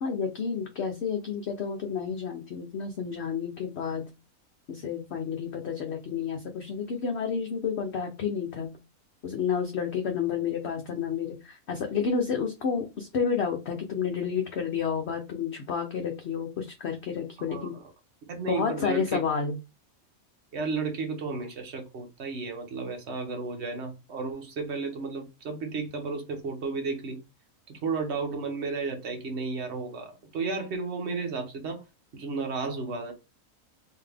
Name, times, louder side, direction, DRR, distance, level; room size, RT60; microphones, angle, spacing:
voice 1, 0.0-4.1 4.7-8.7 9.2-17.7 18.4-19.6, left 6 dB, 55° left, 0.8 m, -30 dB
voice 2, 17.5-17.9 18.3-19.2 20.5-27.2 27.7-31.8 32.1-33.1, right 4 dB, 50° right, 1.2 m, -33 dB
3.8 x 2.8 x 3.3 m
omnidirectional pair, 1.5 m